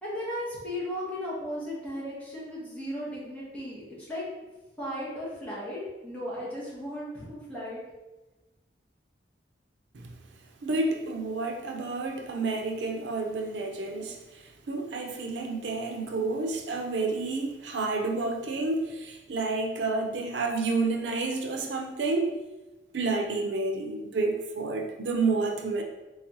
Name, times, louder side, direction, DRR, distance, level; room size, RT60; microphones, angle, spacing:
voice 1, 0.0-4.2 4.8-7.8, equal, 10° left, -8 dB, 1.4 m, -36 dB
voice 2, 10.6-22.4 22.9-25.8, right 3 dB, 75° right, 3 dB, 0.5 m, -30 dB
3.9 x 3.4 x 3.0 m, 1.1 s
head